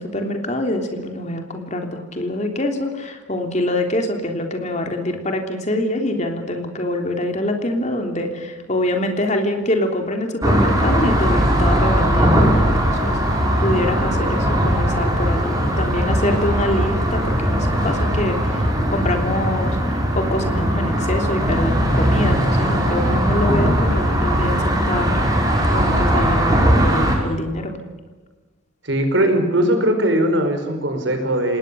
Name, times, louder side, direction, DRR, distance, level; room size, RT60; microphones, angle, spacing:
voice 1, 0.0-19.8 20.1-25.4 25.7-27.8, left 1 dB, 35° left, 4 dB, 3.3 m, -25 dB
sound 1, 10.4-27.2, equal, 20° right, 5.1 m, -19 dB
voice 2, 28.8-31.6, right 1 dB, 65° right, 6 dB, 4.8 m, -19 dB
27.0 x 19.5 x 7.0 m, 1.3 s
head